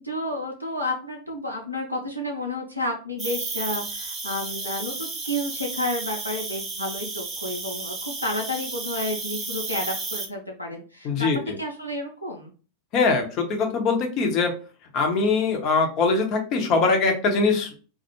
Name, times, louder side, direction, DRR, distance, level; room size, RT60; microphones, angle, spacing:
voice 1, 0.0-11.3 11.6-12.5, left 1 dB, 90° right, 0 dB, 0.4 m, -31 dB
Cricket, 3.2-10.2, right 3 dB, 25° right, 0.6 m, -33 dB
voice 2, 11.0-11.4 12.9-14.5 14.9-17.7, left 4 dB, 40° left, 4 dB, 0.6 m, -22 dB
2.2 x 2.0 x 2.9 m, 0.37 s
figure-of-eight pair, 90°, 0 cm